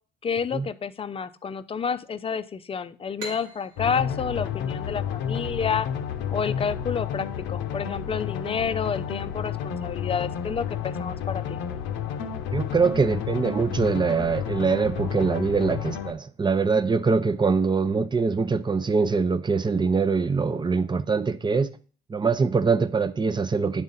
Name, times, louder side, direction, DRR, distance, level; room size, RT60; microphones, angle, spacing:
voice 1, 0.2-5.9 6.3-11.6, left 6 dB, 30° left, 0.5 m, -29 dB
sound 1, 3.2-6.6, right 1 dB, 80° right, 1.6 m, -44 dB
sound 2, 3.8-16.1, left 8 dB, 80° left, 0.7 m, -31 dB
voice 2, 12.5-21.7 22.1-23.8, right 4 dB, 25° right, 0.6 m, -23 dB
9.6 x 3.7 x 4.1 m
supercardioid pair, 70°, 19 cm